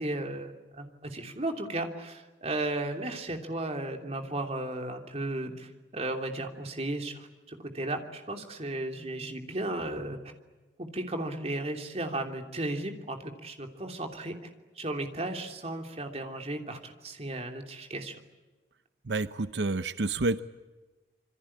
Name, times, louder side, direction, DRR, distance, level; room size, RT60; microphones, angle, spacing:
voice 1, 0.0-10.2 10.8-14.4 14.8-18.2, right 2 dB, 35° right, 4 dB, 3.1 m, -35 dB
voice 2, 19.1-20.4, right 3 dB, 80° right, 12 dB, 0.8 m, -29 dB
27.0 x 25.5 x 8.7 m, 1.2 s
head